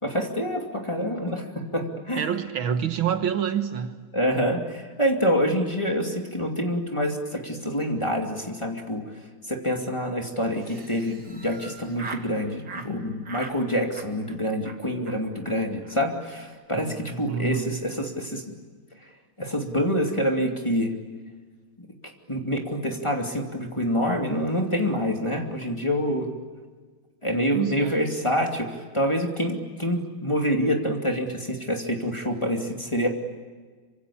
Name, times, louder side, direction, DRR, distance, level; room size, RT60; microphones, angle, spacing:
voice 1, 0.0-2.3 4.1-9.0 9.5-18.4 19.4-20.9 22.3-26.3 27.2-33.1, equal, 15° left, 2.6 m, -26 dB
voice 2, 2.2-4.0 16.7-17.8 27.5-28.0, right 8 dB, 70° right, 2.0 m, -28 dB
Laughter, 10.5-12.3 12.6-12.9 13.2-13.6 13.9-14.3 14.6-14.8 15.1-15.2 15.4-15.5 15.8-15.9 16.2-16.5, right 4 dB, 55° right, 3.0 m, -41 dB
26.5 x 25.5 x 8.6 m
omnidirectional pair, 2.3 m